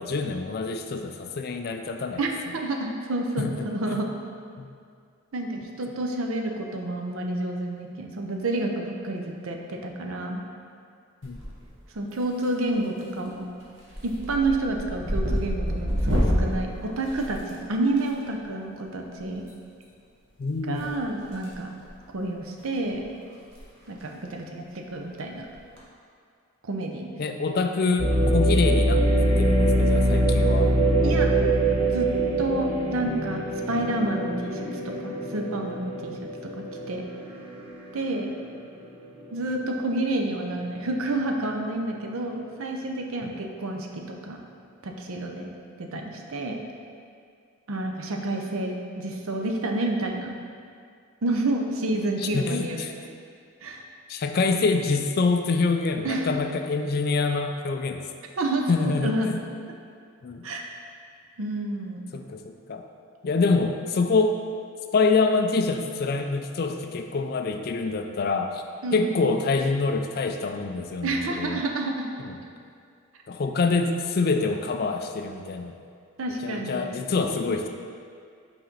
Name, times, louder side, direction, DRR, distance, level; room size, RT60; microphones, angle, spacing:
voice 1, 0.0-2.2 3.4-4.0 4.6-4.7 11.2-11.4 20.4-20.9 27.2-30.7 31.0-31.2 43.2-43.3 52.2-52.9 54.1-58.0 58.7-59.4 60.2-60.4 62.1-62.8 63.2-64.4 64.9-68.6 68.9-71.6 72.2-72.4 73.3-75.7 76.4-77.7, left 4 dB, 45° left, 5 dB, 0.3 m, -26 dB
voice 2, 2.2-4.1 5.3-10.4 11.9-13.5 14.0-19.4 20.7-21.7 22.1-23.1 23.9-25.5 26.6-27.1 31.0-31.3 31.9-32.1 32.4-33.4 33.7-36.2 36.9-37.0 37.9-38.3 39.3-44.4 44.8-46.6 47.7-50.3 51.2-52.9 53.6-53.8 56.0-56.3 58.4-59.3 60.4-60.7 61.4-62.1 68.8-69.3 71.0-72.1 76.2-76.9, right 2 dB, 75° right, 2 dB, 0.6 m, -29 dB
sound 1, 11.2-11.8 12.1-12.6 13.0-13.3 13.6-18.0 19.4-19.5 20.7-21.5 21.8-22.0 22.6-22.7 22.9-23.0 23.4-23.6 23.9-24.0 25.5-25.8, equal, 60° right, 1.1 m, -28 dB
sound 2, 28.0-37.9 38.4-38.5 39.2-39.5, right 1 dB, 25° right, 0.8 m, -23 dB
5.8 x 4.2 x 3.9 m, 2.3 s
head